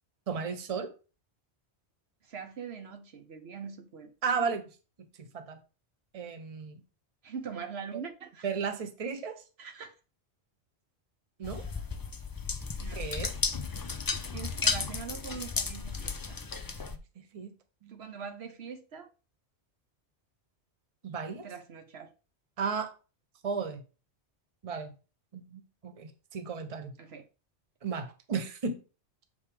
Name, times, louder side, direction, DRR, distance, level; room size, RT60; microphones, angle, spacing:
voice 1, 0.3-0.9 4.2-4.7 5.3-5.6 6.1-6.8 8.4-9.4 11.4-11.7 13.0-13.3 16.9-17.0 17.3-17.5 17.8-18.1 21.0-21.4 22.6-22.9 23.4-23.8 24.6-24.9 25.3-26.9 27.8-28.8, right 5 dB, 35° right, 0.9 m, -34 dB
voice 2, 2.2-4.1 7.2-8.5 9.6-9.9 12.8-13.0 14.3-16.4 17.9-19.1 21.4-22.1 27.0-27.2, right 6 dB, 70° right, 1.1 m, -42 dB
sound 1, 11.4-17.0, left 4 dB, 30° left, 0.4 m, -34 dB
6.9 x 5.2 x 3.4 m
omnidirectional pair, 1.1 m